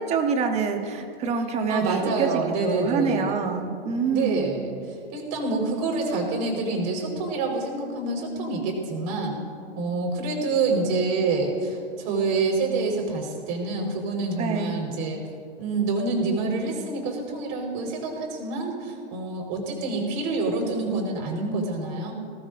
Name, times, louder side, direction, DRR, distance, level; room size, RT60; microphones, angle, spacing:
voice 1, 0.0-4.6 14.4-14.8, right 5 dB, 20° right, 5 dB, 1.1 m, -26 dB
voice 2, 1.7-3.3 3.7-3.8 4.1-4.7 5.1-9.4 9.7-15.2 15.6-22.1, right 3 dB, 40° right, 0 dB, 4.6 m, -27 dB
22.5 x 18.0 x 2.6 m, 2.3 s
hypercardioid pair, 145°, 34 cm